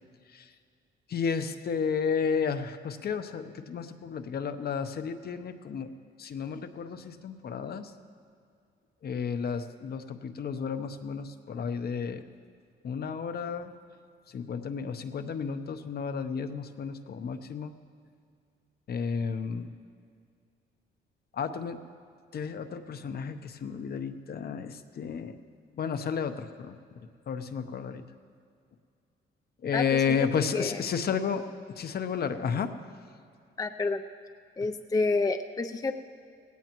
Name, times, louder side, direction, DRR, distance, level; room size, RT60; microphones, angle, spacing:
voice 1, 1.1-5.9 6.2-7.9 9.0-12.2 12.8-13.7 14.3-17.7 18.9-19.7 21.3-21.8 22.3-25.4 25.8-26.8 27.3-28.0 29.6-32.7, left 6 dB, 50° left, 8 dB, 0.8 m, -32 dB
voice 2, 33.6-34.0 34.6-35.9, left 3 dB, 20° left, 6 dB, 0.5 m, -29 dB
18.0 x 16.5 x 3.0 m, 2.3 s
cardioid pair, 90°, 20 cm